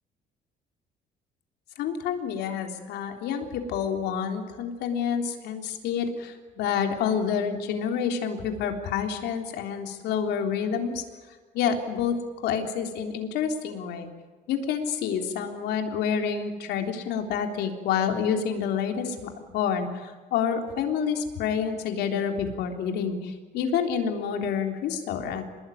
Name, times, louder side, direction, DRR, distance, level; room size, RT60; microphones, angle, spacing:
voice 1, 1.8-11.0 11.5-14.1 14.5-25.4, left 7 dB, 80° left, 5 dB, 3.7 m, -28 dB
26.5 x 21.0 x 9.5 m, 1.4 s
cardioid pair, 110°, 17 cm